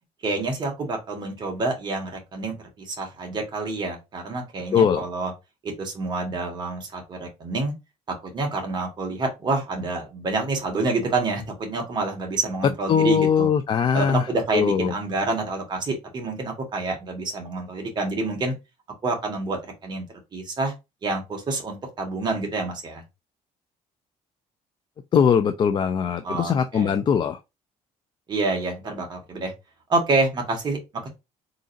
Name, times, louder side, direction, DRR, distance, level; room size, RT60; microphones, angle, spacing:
voice 1, 0.2-5.3 5.6-7.7 8.2-13.5 13.9-18.5 19.0-20.0 20.3-20.7 21.0-23.0 26.2-26.9 28.3-29.5 29.9-31.1, right 3 dB, 35° right, 1.6 m, -27 dB
voice 2, 4.7-5.0 12.9-14.9 25.1-27.4, left 7 dB, 35° left, 0.4 m, -21 dB
4.0 x 3.8 x 2.6 m
cardioid pair, 135°, 13 cm